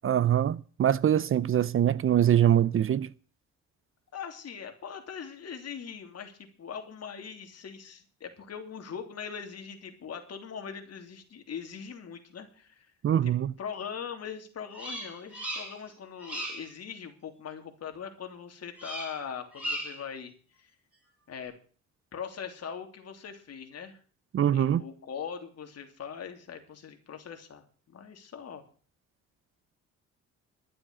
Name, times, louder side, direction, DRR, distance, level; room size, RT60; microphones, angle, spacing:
voice 1, 0.0-3.1 13.0-13.5 24.3-24.8, right 10 dB, 45° right, 0.6 m, -23 dB
voice 2, 4.1-12.9 13.2-13.3 13.6-20.3 20.6-20.7 21.3-21.5 22.1-24.0 24.5-28.6, left 7 dB, 55° left, 3.1 m, -41 dB
Bird vocalization bird call bird song, 14.7-15.9 16.2-16.7 18.8-19.2 19.5-20.1, right 1 dB, 5° right, 6.9 m, -37 dB
12.5 x 7.7 x 8.7 m
cardioid pair, 90°, 30 cm